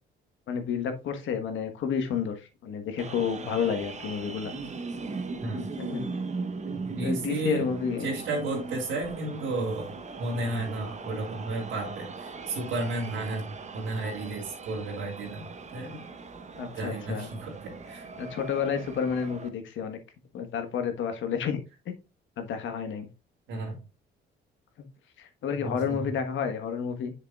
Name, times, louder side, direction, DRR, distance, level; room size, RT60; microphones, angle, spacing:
voice 1, 0.5-4.5 5.8-6.0 7.0-8.1 16.6-17.3 18.2-20.0 20.3-21.6 21.9-22.0 22.4-23.1 25.2-27.1, left 7 dB, 75° left, 7 dB, 1.4 m, -30 dB
sound 1, 3.0-19.5, right 4 dB, 35° right, 1.0 m, -39 dB
voice 2, 6.8-7.7 8.0-9.9 10.2-13.5 13.7-16.0 16.7-18.1 23.5-23.8 25.6-26.1, right 2 dB, 90° right, -2 dB, 2.9 m, -33 dB
7.7 x 6.7 x 2.3 m, 0.28 s
cardioid pair, 90°, 20 cm